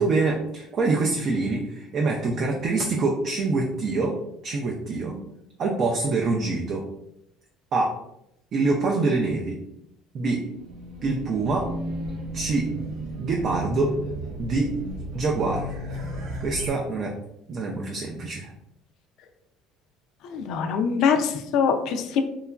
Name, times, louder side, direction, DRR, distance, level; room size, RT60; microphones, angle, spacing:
voice 1, 0.0-4.2 4.4-5.2 5.6-6.8 7.7-8.0 8.5-9.6 10.1-10.5 11.0-11.7 12.3-12.7 13.2-14.0 14.4-14.7 15.1-15.7 16.4-17.1 17.5-18.5, right 3 dB, 45° right, 0 dB, 0.4 m, -25 dB
Race car auto racing / Alarm, 10.5-16.7, right 1 dB, 85° right, 0.8 m, -33 dB
voice 2, 20.2-22.2, left 6 dB, 65° left, 5 dB, 0.3 m, -23 dB
2.9 x 2.3 x 2.3 m, 0.80 s
cardioid pair, 115°, 0 cm